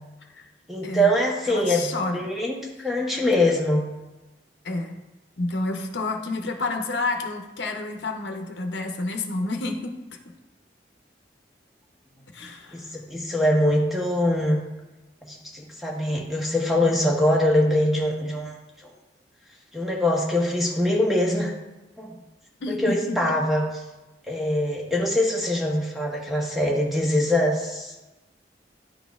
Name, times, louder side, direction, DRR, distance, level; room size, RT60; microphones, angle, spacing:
voice 1, 0.7-3.9 12.7-14.6 15.2-18.6 18.8-18.9 19.7-21.5 22.0-22.2 22.7-23.6 24.3-27.9, left 1 dB, ahead, -2 dB, 0.9 m, -23 dB
voice 2, 1.5-2.2 4.6-5.0 5.4-9.9 12.3-12.8 22.6-23.2, left 2 dB, 85° left, 4 dB, 0.7 m, -29 dB
10.0 x 4.1 x 2.4 m, 1.1 s
head